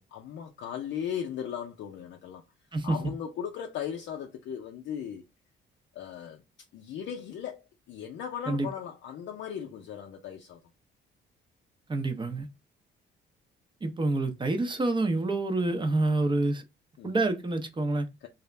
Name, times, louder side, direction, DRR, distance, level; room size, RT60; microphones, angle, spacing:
voice 1, 0.0-2.4 2.8-5.2 5.9-6.4 6.7-7.6 7.9-10.6 17.0-17.2, left 8 dB, 70° left, 0.4 m, -37 dB
voice 2, 2.7-3.1 8.5-8.7 11.9-12.5 13.8-16.6 17.0-18.1, right 2 dB, 25° right, 0.6 m, -27 dB
2.4 x 2.0 x 3.1 m
cardioid pair, 90°, 20 cm